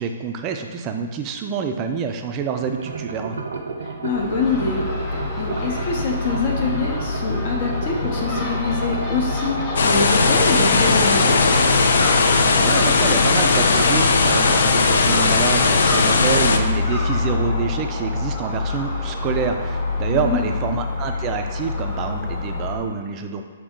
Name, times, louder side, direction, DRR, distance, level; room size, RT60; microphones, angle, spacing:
voice 1, 0.0-3.4 12.6-23.4, right 6 dB, 25° right, 5 dB, 0.3 m, -27 dB
sound 1, 2.6-12.6, right 4 dB, 90° right, 0.5 m, -31 dB
voice 2, 3.8-11.4 20.1-20.5, left 4 dB, 50° left, 0 dB, 0.7 m, -25 dB
Crow / Gull seagull, 4.1-22.8, left 3 dB, 25° left, 1.0 m, -26 dB
sound 2, 9.8-16.6, left 4 dB, 70° left, 0.4 m, -18 dB
5.0 x 2.6 x 3.6 m, 1.5 s
hypercardioid pair, 150°, 0 cm